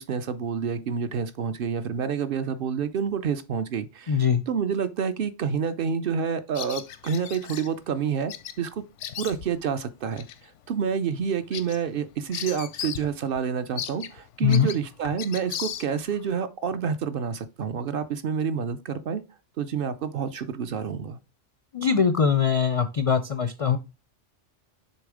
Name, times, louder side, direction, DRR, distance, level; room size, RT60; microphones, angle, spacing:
voice 1, 0.0-8.8 9.2-19.2 19.6-21.2, right 7 dB, 60° right, 0.7 m, -28 dB
voice 2, 4.1-4.4 14.4-14.7 21.7-23.8, left 6 dB, 60° left, 0.3 m, -22 dB
Bird vocalization bird call bird song, 6.5-7.7 8.3-8.6 8.8-9.6 10.1-10.4 10.8-10.9 11.2-13.1 13.4-13.5 13.8-16.2, left 9 dB, 80° left, 0.9 m, -36 dB
7.1 x 3.3 x 4.9 m
omnidirectional pair, 1.2 m